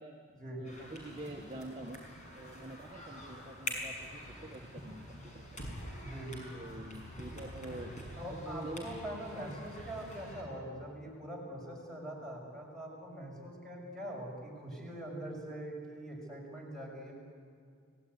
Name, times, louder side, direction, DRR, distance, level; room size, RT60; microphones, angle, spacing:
sound 1, 0.6-10.4, left 1 dB, 35° left, 6.2 m, -46 dB
voice 1, 0.6-2.0 2.3-5.4 6.5-7.9 8.3-8.9, right 1 dB, 25° right, -1 dB, 1.6 m, -46 dB
voice 2, 6.0-6.5 8.2-17.1, right 1 dB, ahead, -1 dB, 6.4 m, -43 dB
29.5 x 17.5 x 9.6 m, 2.3 s
head